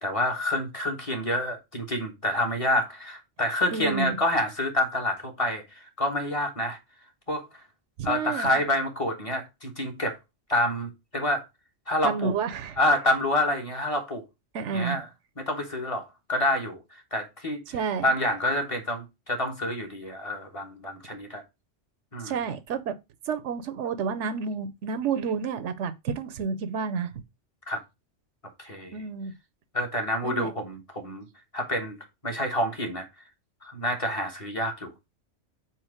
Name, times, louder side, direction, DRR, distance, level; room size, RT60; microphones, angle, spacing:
voice 1, 0.0-6.8 7.3-7.6 8.0-10.2 10.5-11.4 11.9-12.3 12.8-14.2 14.7-15.1 15.4-17.6 18.0-21.4 22.1-22.4 27.7-27.8 28.6-29.0 29.7-31.3 31.5-32.0 32.2-33.1 33.6-34.9, left 1 dB, 30° left, 1.2 m, -28 dB
voice 2, 3.7-4.2 8.0-8.6 12.0-12.8 14.5-15.0 17.7-18.1 22.2-23.0 23.3-27.1 28.9-29.3 30.2-30.5, right 6 dB, 75° right, 1.0 m, -30 dB
4.5 x 4.4 x 4.9 m
omnidirectional pair, 1.2 m